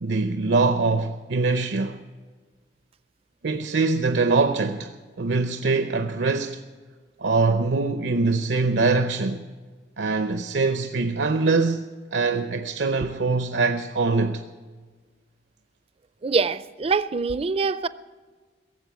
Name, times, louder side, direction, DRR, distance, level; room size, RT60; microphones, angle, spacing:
voice 1, 0.0-2.0 3.4-6.7 7.2-9.5 10.0-14.4, right 3 dB, 75° right, 0.6 m, -23 dB
voice 2, 16.2-17.9, right 4 dB, 35° right, 0.4 m, -24 dB
17.5 x 7.6 x 9.0 m
head